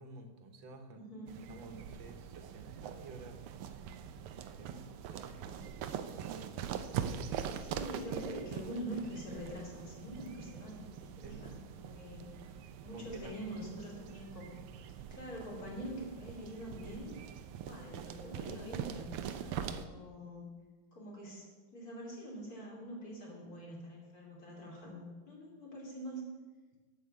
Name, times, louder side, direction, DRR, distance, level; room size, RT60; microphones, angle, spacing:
voice 1, 0.0-1.1 1.5-3.4 4.5-5.6 6.3-6.7 11.2-11.4 12.9-13.4, right 3 dB, 65° right, 6 dB, 1.8 m, -51 dB
voice 2, 0.9-1.5 7.6-12.6 12.8-14.5 15.1-17.1 17.7-20.5 20.9-21.5 21.7-26.2, equal, 40° left, -3 dB, 3.4 m, -45 dB
sound 1, 1.3-19.9, right 8 dB, 85° right, 1.6 m, -43 dB
11.5 x 5.5 x 8.4 m, 1.3 s
omnidirectional pair, 2.4 m